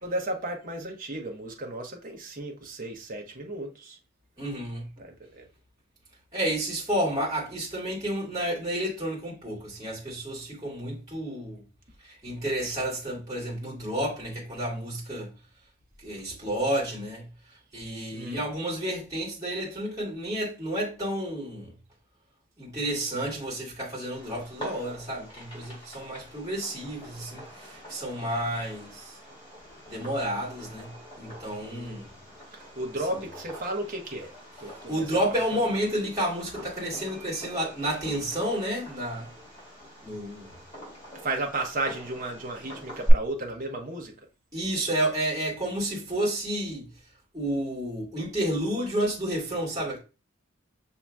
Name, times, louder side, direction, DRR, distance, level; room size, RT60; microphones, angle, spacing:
voice 1, 0.0-4.0 5.0-5.5 18.1-18.4 31.6-32.0 32.5-34.3 34.6-35.0 35.3-35.4 41.2-44.1, right 2 dB, 45° right, 1.0 m, -34 dB
voice 2, 4.4-4.9 6.3-11.6 12.0-15.3 16.0-17.3 17.7-21.7 22.6-29.2 29.9-32.1 33.1-33.2 34.7-39.3 40.0-40.5 44.5-46.9 47.3-50.0, right 1 dB, 20° right, 2.1 m, -31 dB
Fireworks, 24.1-43.1, equal, 30° left, 2.5 m, -40 dB
6.2 x 2.8 x 2.3 m
head